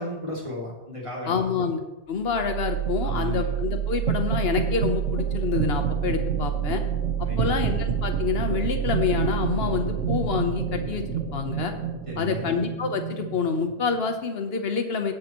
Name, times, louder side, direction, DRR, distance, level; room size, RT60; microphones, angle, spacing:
voice 1, 0.0-1.7 3.0-3.5 7.3-7.6 12.1-12.5, left 1 dB, 20° right, -4 dB, 2.7 m, -35 dB
voice 2, 1.3-6.8 7.2-11.7 12.2-15.1, left 5 dB, 45° left, 6 dB, 1.0 m, -27 dB
sound 1, 2.2-14.1, right 7 dB, 50° right, 1.7 m, -27 dB
17.5 x 7.8 x 3.1 m, 1.0 s
omnidirectional pair, 1.8 m